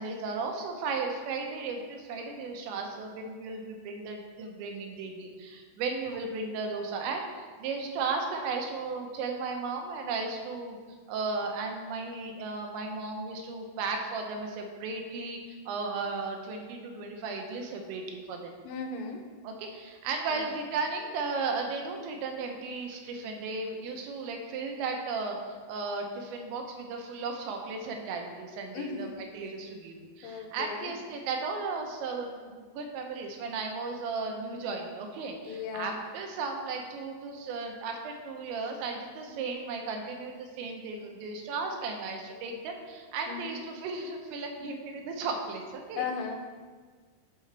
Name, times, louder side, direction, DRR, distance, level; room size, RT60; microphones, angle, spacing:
voice 1, 0.0-10.8 11.1-18.5 19.4-46.1, right 4 dB, 85° right, 2 dB, 3.3 m, -35 dB
voice 2, 18.6-19.2 20.3-20.5 28.7-29.1 30.2-30.9 35.5-36.0 39.3-39.4 43.3-43.5 46.0-46.4, left 5 dB, 90° left, 3 dB, 3.1 m, -36 dB
11.5 x 5.7 x 3.4 m, 1.5 s
omnidirectional pair, 5.1 m